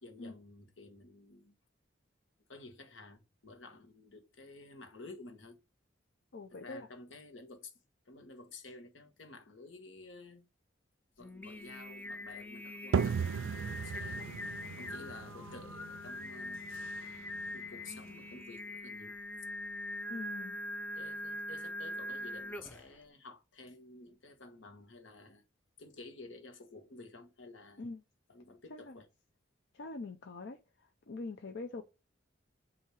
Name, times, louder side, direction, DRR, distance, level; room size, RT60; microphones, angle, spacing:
voice 1, 0.0-1.6 2.5-5.6 6.5-7.7 8.0-10.5 11.2-13.4 13.8-14.4 14.8-16.6 17.5-19.1 20.9-25.4 25.8-27.9 28.3-29.1, left 3 dB, 85° left, 1.3 m, -52 dB
voice 2, 6.3-6.9 14.2-14.3 20.1-20.6 27.8-28.0 28.7-29.0 29.7-31.8, left 3 dB, 65° left, 0.6 m, -44 dB
Singing, 11.2-22.9, left 1 dB, 10° left, 0.4 m, -43 dB
sound 1, 12.9-18.4, right 6 dB, 90° right, 0.4 m, -37 dB
8.3 x 2.8 x 4.7 m
head